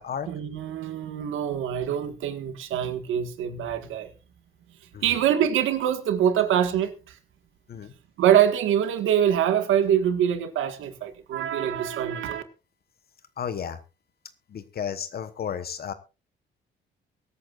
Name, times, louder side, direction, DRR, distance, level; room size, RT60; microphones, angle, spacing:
voice 1, 0.3-4.1 5.0-7.2 8.2-12.4, right 9 dB, 85° right, 1.7 m, -24 dB
voice 2, 13.4-13.8 14.5-15.9, left 8 dB, 50° left, 1.2 m, -33 dB
24.0 x 8.6 x 2.5 m
cardioid pair, 90°, 20 cm